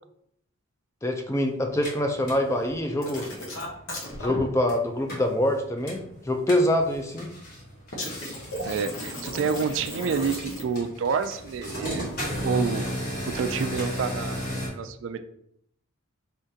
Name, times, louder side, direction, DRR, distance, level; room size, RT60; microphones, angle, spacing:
voice 1, 1.0-3.3 4.2-7.3, left 1 dB, 15° left, 3 dB, 0.4 m, -25 dB
sound 1, 1.6-14.7, equal, 45° left, 1.4 m, -36 dB
sound 2, 3.0-4.4 7.9-10.9 13.4-13.7, left 1 dB, 65° left, 1.0 m, -35 dB
voice 2, 8.6-12.1 12.4-12.9 13.3-14.4 14.7-15.2, right 5 dB, 60° right, 9 dB, 0.3 m, -28 dB
4.3 x 3.7 x 2.7 m, 0.71 s
head